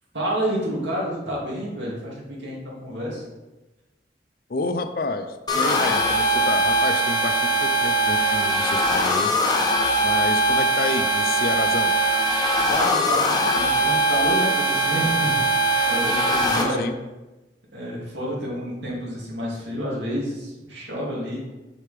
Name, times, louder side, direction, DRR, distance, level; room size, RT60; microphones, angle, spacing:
voice 1, 0.1-3.2 12.7-15.4 15.9-16.9 17.7-21.5, equal, 90° right, -4 dB, 2.4 m, -29 dB
voice 2, 4.5-11.9 16.5-16.9, left 3 dB, 55° left, 8 dB, 0.5 m, -29 dB
sound 1, 5.5-16.6, right 1 dB, 25° left, 0.8 m, -21 dB
6.6 x 6.3 x 3.4 m, 1.1 s
head